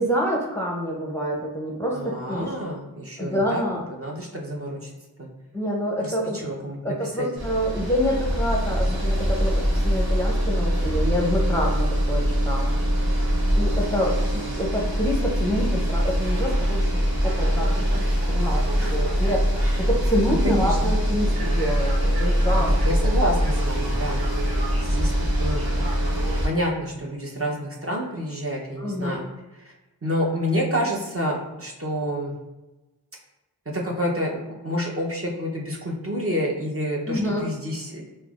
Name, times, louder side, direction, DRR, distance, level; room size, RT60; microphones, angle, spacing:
voice 1, 0.0-2.5 3.2-3.9 5.5-6.5 6.8-12.8 13.6-16.9 17.2-19.5 19.8-22.7 28.8-29.2 37.1-37.5, equal, 5° left, -2 dB, 0.6 m, -27 dB
voice 2, 1.9-3.6 3.9-4.9 5.2-5.3 6.0-7.3 18.8-19.0 19.6-19.8 20.4-20.9 22.6-24.2 24.8-25.1 25.4-25.7 26.4-29.3 30.0-32.3 33.7-38.1, equal, 35° right, -2 dB, 0.7 m, -28 dB
sound 1, 7.4-26.5, equal, 65° right, 0.8 m, -23 dB
5.2 x 2.1 x 2.4 m, 1.0 s
wide cardioid pair, 50°, 39 cm